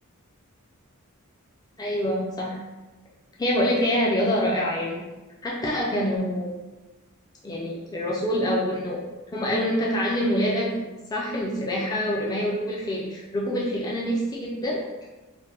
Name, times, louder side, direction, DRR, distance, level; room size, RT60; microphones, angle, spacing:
voice 1, 1.8-2.6 3.4-5.0 5.4-6.5 7.4-9.0 9.3-10.8 11.1-14.8, equal, 15° left, -4 dB, 0.3 m, -26 dB
2.8 x 2.0 x 3.2 m, 1.2 s
head